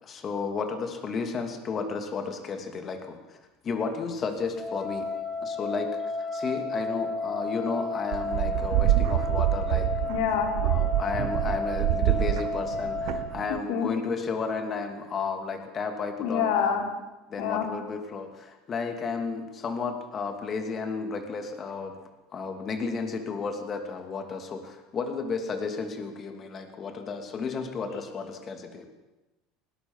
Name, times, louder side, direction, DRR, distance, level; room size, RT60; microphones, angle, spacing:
voice 1, 0.0-3.4 3.6-5.1 5.4-9.9 10.6-16.8 17.3-22.0 22.3-28.9, left 5 dB, 25° left, 6 dB, 2.7 m, -33 dB
sound 1, 4.6-13.2, left 3 dB, 10° left, 2.9 m, -32 dB
sound 2, 8.1-13.6, right 16 dB, 60° right, 0.9 m, -26 dB
voice 2, 10.1-10.5 13.7-13.9 16.2-16.8 17.4-17.7 27.9-28.0, left 8 dB, 75° left, 4 dB, 4.0 m, -26 dB
20.0 x 19.0 x 7.4 m, 1.0 s
cardioid pair, 150°, 0 cm